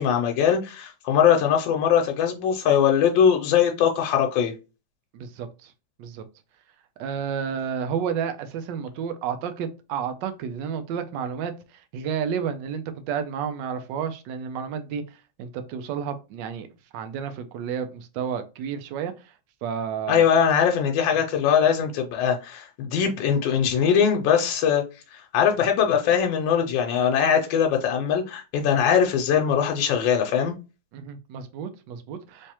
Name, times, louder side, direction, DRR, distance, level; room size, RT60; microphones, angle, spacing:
voice 1, 0.0-4.5 20.1-24.8 25.1-30.5, left 8 dB, 80° left, 1.3 m, -21 dB
voice 2, 5.1-5.7 6.0-6.2 7.0-11.5 11.9-15.0 15.4-16.7 16.9-19.1 19.6-20.2 30.9-32.5, right 7 dB, 75° right, 1.2 m, -31 dB
3.3 x 3.2 x 2.8 m
omnidirectional pair, 2.0 m